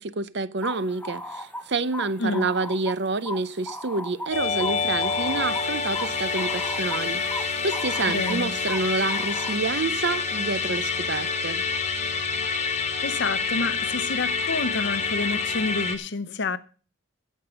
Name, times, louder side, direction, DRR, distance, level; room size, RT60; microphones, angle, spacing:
voice 1, 0.0-11.6, right 3 dB, 55° right, 0.7 m, -28 dB
sound 1, 0.6-9.6, left 1 dB, 10° left, 0.8 m, -38 dB
Musical instrument, 4.3-16.0, left 5 dB, 35° left, 1.5 m, -27 dB
voice 2, 8.1-8.5 13.0-16.6, left 3 dB, 55° left, 0.8 m, -28 dB
15.5 x 5.5 x 6.9 m
head